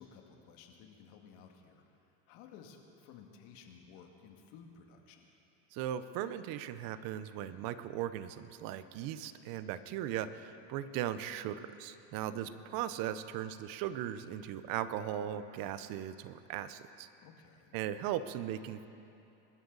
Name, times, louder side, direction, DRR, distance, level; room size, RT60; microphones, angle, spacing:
voice 1, 0.0-1.8 2.3-5.3 12.3-12.7 17.2-17.8, left 6 dB, 70° left, 2 dB, 2.2 m, -55 dB
voice 2, 5.7-17.1 17.7-18.9, right 11 dB, 60° right, 13 dB, 0.9 m, -38 dB
25.5 x 13.0 x 4.1 m, 2.8 s
supercardioid pair, 115°, 38 cm